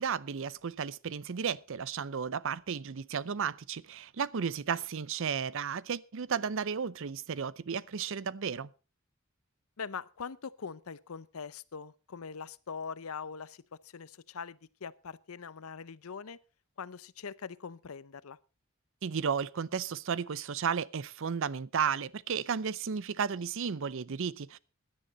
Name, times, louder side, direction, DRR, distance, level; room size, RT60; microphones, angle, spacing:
voice 1, 0.0-8.7 19.0-24.6, right 6 dB, 65° right, 0.6 m, -33 dB
voice 2, 4.4-4.8 9.8-16.4 16.8-18.4, left 6 dB, 85° left, 0.7 m, -42 dB
16.5 x 10.5 x 4.1 m
head